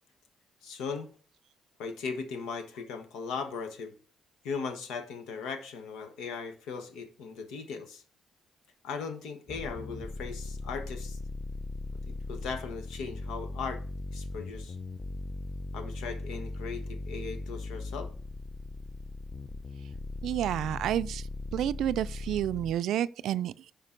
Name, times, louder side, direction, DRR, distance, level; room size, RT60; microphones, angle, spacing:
voice 1, 0.6-1.1 1.8-3.9 4.4-8.0 8.8-11.2 12.0-13.8 14.1-14.8 15.7-18.1, left 5 dB, 90° left, 1.2 m, -38 dB
sound 1, 9.5-22.7, left 3 dB, 30° left, 0.6 m, -39 dB
voice 2, 20.2-21.2 21.5-23.7, right 11 dB, 80° right, 0.3 m, -30 dB
9.7 x 5.3 x 3.8 m
cardioid pair, 90°, 0 cm